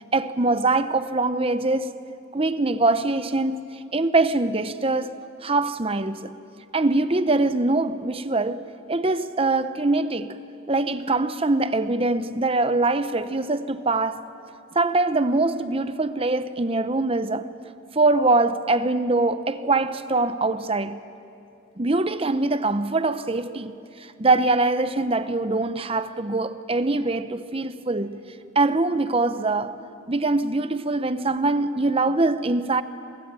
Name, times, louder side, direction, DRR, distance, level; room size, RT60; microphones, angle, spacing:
voice 1, 0.1-2.0 2.3-3.6 3.9-6.3 6.7-10.4 10.7-14.2 14.7-17.5 17.9-21.0 21.8-23.7 24.0-28.2 28.5-29.8 30.1-32.8, right 2 dB, 30° right, 0.8 m, -23 dB
27.5 x 20.5 x 9.0 m
head